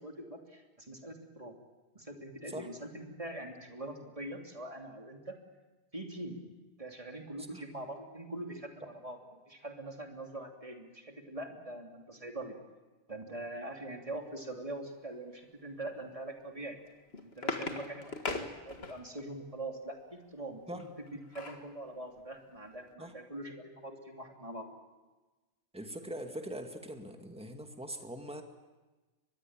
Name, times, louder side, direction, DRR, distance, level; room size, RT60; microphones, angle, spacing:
voice 1, 0.0-1.6 1.9-5.4 5.9-6.4 6.8-9.2 9.5-12.6 13.1-16.8 17.2-24.7, right 1 dB, 30° right, 2 dB, 3.1 m, -43 dB
sound 1, 16.8-19.3 20.8-21.7 22.2-22.3 22.6-22.8, left 3 dB, 60° left, 2.1 m, -39 dB
voice 2, 25.7-28.4, right 1 dB, 5° right, 4 dB, 2.1 m, -42 dB
23.5 x 21.0 x 8.9 m, 1.2 s
omnidirectional pair, 1.2 m